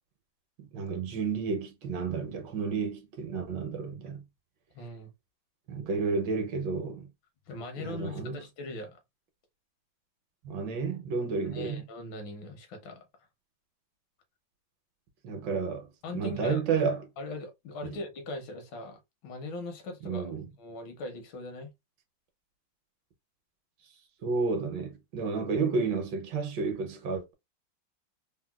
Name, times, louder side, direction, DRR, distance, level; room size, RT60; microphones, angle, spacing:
voice 1, 0.6-4.2 5.7-7.1 7.8-8.4 10.4-11.8 15.2-17.0 20.0-20.5 24.2-27.3, right 5 dB, 70° right, 1.3 m, -31 dB
voice 2, 4.7-5.1 7.5-9.0 11.5-13.1 16.0-16.6 17.2-21.7, left 2 dB, 75° left, 1.5 m, -40 dB
3.9 x 2.1 x 2.2 m
omnidirectional pair, 2.1 m